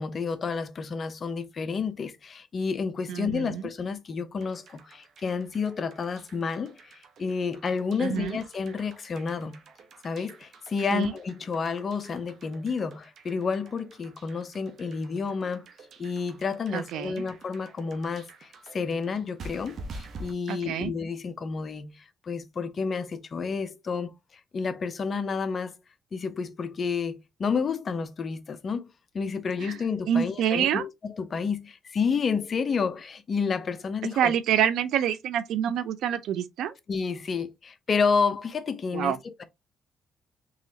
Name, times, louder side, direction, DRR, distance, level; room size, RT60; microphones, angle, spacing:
voice 1, 0.0-9.6 10.0-15.7 16.0-24.2 24.5-25.8 26.1-34.3 36.9-39.4, left 5 dB, 45° left, 0.7 m, -30 dB
voice 2, 3.1-3.7 8.0-8.4 10.9-11.1 16.7-17.3 20.5-20.9 29.6-29.8 30.1-30.8 34.2-36.7 38.9-39.2, right 9 dB, 80° right, 0.5 m, -27 dB
sound 1, 4.4-20.3, right 2 dB, 60° right, 0.9 m, -48 dB
4.0 x 3.0 x 2.8 m
cardioid pair, 90°, 0 cm